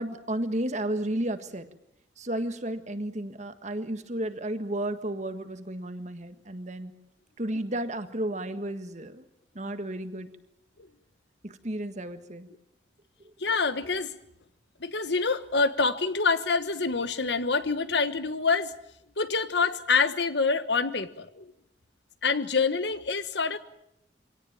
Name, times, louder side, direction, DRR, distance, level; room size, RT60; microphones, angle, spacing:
voice 1, 0.0-1.7 2.2-6.9 7.4-9.3 9.5-10.3 11.4-12.5 13.2-13.3, right 1 dB, 40° right, 9 dB, 1.6 m, -33 dB
voice 2, 13.4-14.1 14.8-18.7 19.2-21.5 22.2-23.6, left 4 dB, 70° left, 12 dB, 1.3 m, -26 dB
24.5 x 18.0 x 9.0 m, 0.80 s
head